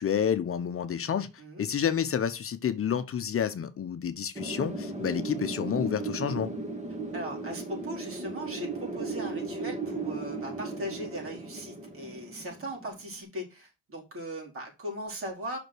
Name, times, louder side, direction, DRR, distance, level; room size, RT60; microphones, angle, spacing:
voice 1, 0.0-1.3 1.6-6.5, left 8 dB, 45° left, 0.9 m, -29 dB
Wind, 4.4-13.1, right 3 dB, 25° right, 2.6 m, -36 dB
voice 2, 7.1-15.6, equal, 45° right, 4.6 m, -38 dB
6.1 x 5.1 x 6.2 m
cardioid pair, 90°, 30 cm